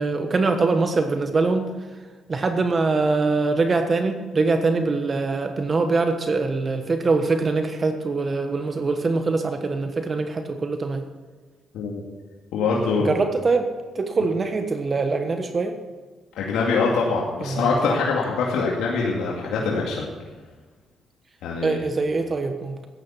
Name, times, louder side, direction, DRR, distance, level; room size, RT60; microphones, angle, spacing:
voice 1, 0.0-1.7 2.3-11.0 13.0-13.7 13.9-15.8 17.4-17.7 21.6-22.8, right 3 dB, 35° right, 6 dB, 1.3 m, -23 dB
voice 2, 12.5-13.2 16.4-20.0 21.4-21.8, left 4 dB, 85° left, -3 dB, 2.4 m, -23 dB
14.0 x 10.0 x 5.8 m, 1.4 s
cardioid pair, 90°, 0 cm